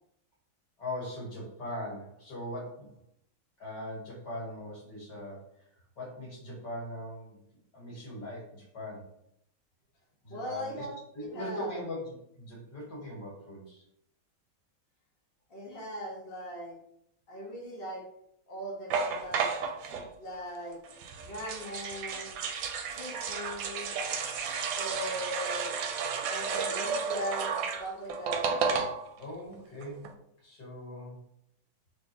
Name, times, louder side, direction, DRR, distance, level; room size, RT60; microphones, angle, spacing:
voice 1, 0.8-2.9 3.6-5.4 6.0-7.4 7.7-9.1 10.2-10.8 11.1-13.8 29.2-30.1 30.4-31.2, left 1 dB, 55° left, -4 dB, 2.0 m, -40 dB
voice 2, 10.3-11.8 15.5-16.8 17.3-18.0 18.5-19.5 19.8-20.8 21.2-22.3 22.8-23.9 24.7-25.7 26.3-28.5, equal, 40° left, -4 dB, 0.9 m, -40 dB
sound 1, 18.9-20.1 20.9-29.2 29.5-29.6 29.8-30.1, right 5 dB, 75° right, 1.2 m, -32 dB
3.8 x 3.3 x 2.8 m, 0.73 s
omnidirectional pair, 2.2 m